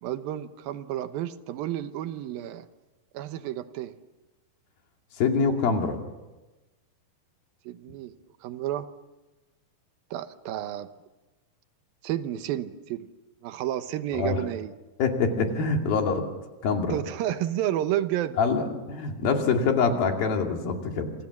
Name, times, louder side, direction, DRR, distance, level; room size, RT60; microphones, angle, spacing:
voice 1, 0.0-2.7 3.1-4.0 7.7-8.1 8.4-8.9 10.1-10.9 12.0-13.1 13.4-14.7 16.9-18.4, right 12 dB, 75° right, 11 dB, 2.6 m, -31 dB
voice 2, 5.2-6.0 14.1-14.4 15.0-16.3 16.6-17.0 18.4-21.1, left 5 dB, 65° left, 3 dB, 4.2 m, -25 dB
27.5 x 25.5 x 7.3 m, 1.1 s
omnidirectional pair, 4.7 m